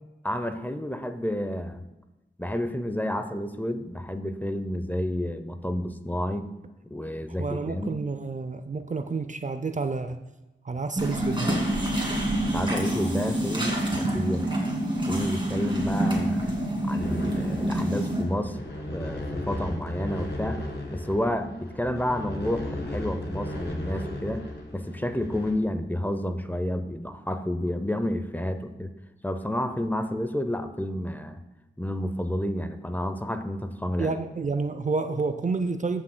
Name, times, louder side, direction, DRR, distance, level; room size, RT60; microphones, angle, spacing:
voice 1, 0.2-1.9 2.4-6.5 6.8-8.0 12.5-14.5 15.1-16.5 16.9-20.6 20.9-28.9 29.2-31.4 31.8-34.2, left 1 dB, 10° left, 8 dB, 0.6 m, -30 dB
voice 2, 7.4-10.2 10.6-11.5 34.0-36.0, right 4 dB, 40° right, 9 dB, 0.5 m, -29 dB
sound 1, 11.0-18.2, right 1 dB, 25° right, 2.3 m, -27 dB
sound 2, 17.0-25.5, left 1 dB, 65° left, 1.7 m, -35 dB
14.5 x 6.1 x 2.2 m, 1.0 s
cardioid pair, 45°, 20 cm